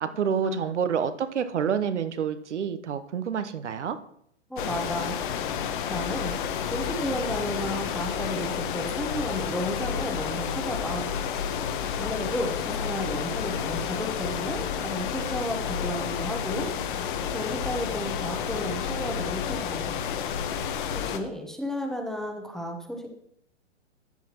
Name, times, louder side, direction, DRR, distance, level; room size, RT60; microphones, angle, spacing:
voice 1, 0.0-4.0, right 7 dB, 75° right, 10 dB, 0.9 m, -28 dB
voice 2, 4.5-5.2 5.9-6.4 6.7-11.1 12.0-16.7 17.3-19.9 20.9-23.1, equal, ahead, 2 dB, 0.9 m, -33 dB
sound 1, 4.6-21.2, left 8 dB, 45° left, 1.1 m, -30 dB
13.0 x 7.6 x 3.0 m, 0.70 s
hypercardioid pair, 125°, 36 cm